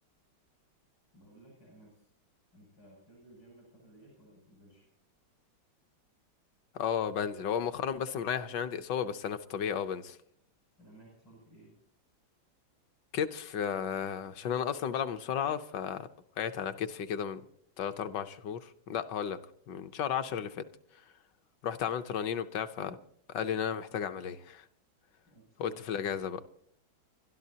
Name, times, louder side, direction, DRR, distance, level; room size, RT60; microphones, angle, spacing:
voice 1, 1.1-2.1 2.5-4.9 10.8-11.7 25.3-26.0, right 2 dB, 90° left, 7.9 m, -57 dB
voice 2, 6.7-10.2 13.1-16.1 16.4-17.4 17.8-19.4 19.7-20.6 21.6-23.0 23.3-24.6 25.6-26.4, left 8 dB, 70° left, 1.3 m, -33 dB
29.0 x 12.5 x 2.8 m
omnidirectional pair, 2.2 m